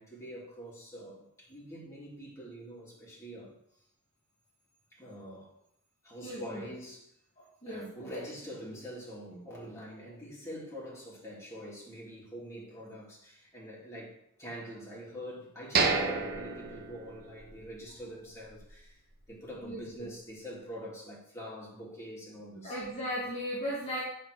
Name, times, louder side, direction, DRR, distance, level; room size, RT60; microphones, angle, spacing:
voice 1, 0.0-3.5 4.9-5.6 6.0-7.1 7.6-19.0 19.3-22.8, equal, 15° left, -6 dB, 3.0 m, -45 dB
voice 2, 6.2-6.6 7.4-8.1 19.6-20.1 22.6-24.0, equal, 30° left, -7 dB, 2.0 m, -37 dB
sound 1, 15.7-17.7 18.0-18.1 18.6-18.8, right 4 dB, 50° right, 0.9 m, -30 dB
7.8 x 4.1 x 6.6 m, 0.72 s
head